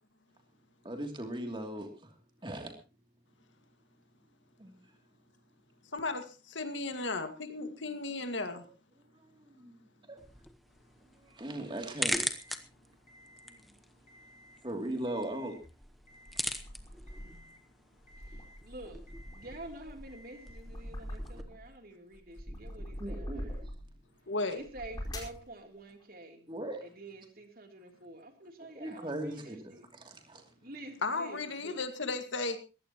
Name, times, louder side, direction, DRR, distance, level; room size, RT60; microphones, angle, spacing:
voice 1, 0.8-2.1 2.4-2.7 4.6-4.8 8.5-8.7 9.6-9.7 10.1-10.2 11.2-12.2 12.5-12.6 14.6-15.5 23.0-23.5 26.5-26.8 28.7-30.4, right 1 dB, 25° right, 3 dB, 2.9 m, -39 dB
voice 2, 5.9-8.6 24.3-24.6 31.0-32.6, left 3 dB, 90° left, 7 dB, 2.0 m, -35 dB
sound 1, 10.2-21.4, equal, ahead, 0.9 m, -42 dB
Alarm, 12.1-12.6 13.1-13.6 14.0-14.6 15.1-15.6 16.1-16.6 17.1-17.6 18.1-18.6 19.1-19.6 20.1-20.6, left 1 dB, 40° left, 2.9 m, -58 dB
sound 2, 15.6-17.5 18.0-21.7 22.1-24.0 24.6-25.4, equal, 20° left, 4.9 m, -43 dB
voice 3, 18.6-19.0 19.3-23.6 24.5-26.4 26.8-29.8 30.6-31.8, right 1 dB, 50° right, 4 dB, 3.3 m, -48 dB
21.0 x 16.0 x 3.0 m, 0.32 s
head